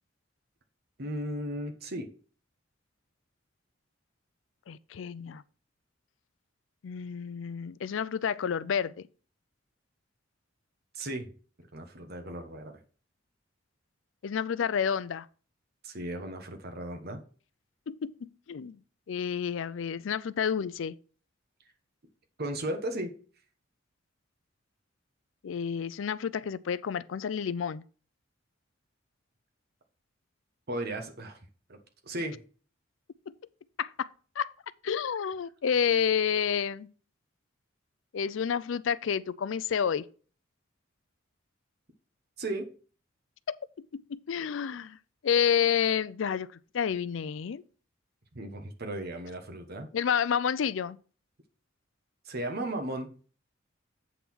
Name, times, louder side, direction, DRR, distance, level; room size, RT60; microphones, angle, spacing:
voice 1, 1.0-2.1 10.9-11.3 11.6-12.8 15.8-17.2 22.4-23.1 30.7-31.4 31.7-32.4 42.4-42.7 48.3-49.9 52.2-53.2, right 1 dB, 55° right, 1.1 m, -36 dB
voice 2, 4.7-5.4 6.8-8.9 14.2-15.3 17.9-18.8 19.1-21.0 25.4-27.8 33.8-34.1 34.4-34.5 34.8-36.9 38.1-40.1 43.5-45.0 45.2-46.5 46.7-47.6 49.9-51.0, left 7 dB, 75° left, 0.4 m, -29 dB
8.3 x 3.7 x 6.0 m
head